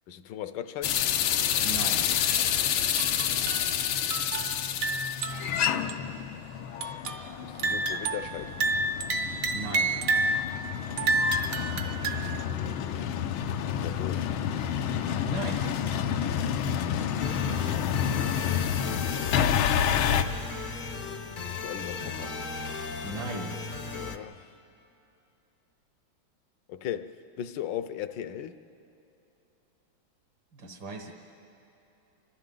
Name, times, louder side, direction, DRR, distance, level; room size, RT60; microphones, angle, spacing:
voice 1, 0.1-1.1 7.6-8.5 12.1-13.1 13.7-14.3 18.4-20.5 20.9-22.4 23.9-24.5 26.7-28.6, left 10 dB, 70° left, 1.3 m, -39 dB
sound 1, 0.8-20.2, left 9 dB, 90° left, 1.6 m, -29 dB
voice 2, 1.6-2.1 9.5-9.9 15.2-15.6 23.0-23.6 30.5-31.1, right 3 dB, 75° right, 2.2 m, -37 dB
sound 2, 2.2-2.5 3.0-5.6 5.9-6.0 6.8-7.3 7.6-10.5 11.0-12.4, right 3 dB, 55° right, 1.0 m, -30 dB
sound 3, 17.2-24.2, left 4 dB, 45° left, 0.6 m, -36 dB
29.0 x 25.5 x 3.9 m
omnidirectional pair, 2.2 m